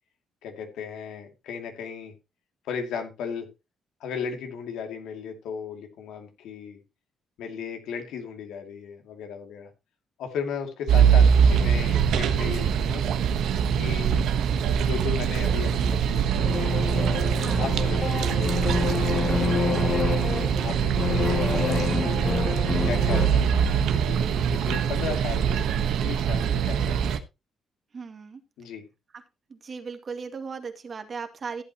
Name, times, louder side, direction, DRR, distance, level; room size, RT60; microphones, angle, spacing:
voice 1, 0.4-2.1 2.6-3.5 4.0-6.8 7.4-9.7 10.2-13.0 13.7-14.3 14.8-16.7 17.6-20.0 20.6-22.3 22.8-27.2 28.6-28.8, left 6 dB, 85° left, 5 dB, 2.6 m, -36 dB
sound 1, 10.9-27.2, right 7 dB, 80° right, 1.2 m, -23 dB
sound 2, 16.4-23.3, left 5 dB, 40° left, 2.0 m, -28 dB
voice 2, 17.4-17.7 27.9-28.4 29.5-31.6, right 5 dB, 45° right, 7 dB, 2.1 m, -37 dB
14.5 x 8.4 x 3.0 m, 0.25 s
cardioid pair, 90°, 0 cm